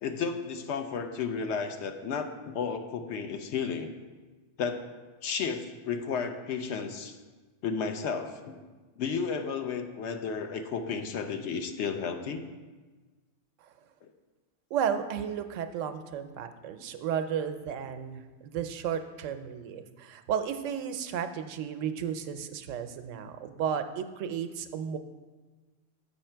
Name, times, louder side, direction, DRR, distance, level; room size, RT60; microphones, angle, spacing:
voice 1, 0.0-3.9 4.6-4.8 5.2-7.2 7.6-8.6 9.0-12.4, left 6 dB, 70° left, 7 dB, 0.9 m, -33 dB
voice 2, 14.7-25.0, right 8 dB, 85° right, 9 dB, 0.9 m, -33 dB
7.4 x 5.5 x 4.4 m, 1.3 s
omnidirectional pair, 1.3 m